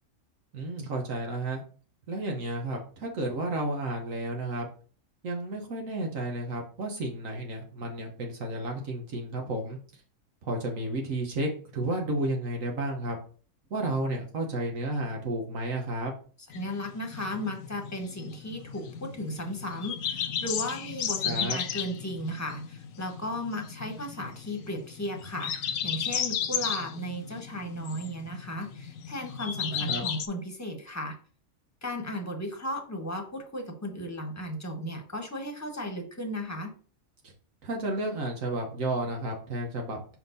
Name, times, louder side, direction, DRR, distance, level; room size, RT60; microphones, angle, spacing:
voice 1, 0.5-1.6 2.1-4.7 5.2-9.8 10.4-13.2 13.7-16.1 21.2-21.6 29.7-30.1 37.2-37.3 37.6-40.2, right 1 dB, 75° right, 1 dB, 1.5 m, -32 dB
sound 1, 16.5-30.3, left 8 dB, 80° left, 1.1 m, -35 dB
voice 2, 16.5-25.5 25.8-31.2 31.8-36.7, equal, 15° left, 2 dB, 1.1 m, -35 dB
5.4 x 4.6 x 3.9 m, 0.41 s
omnidirectional pair, 1.4 m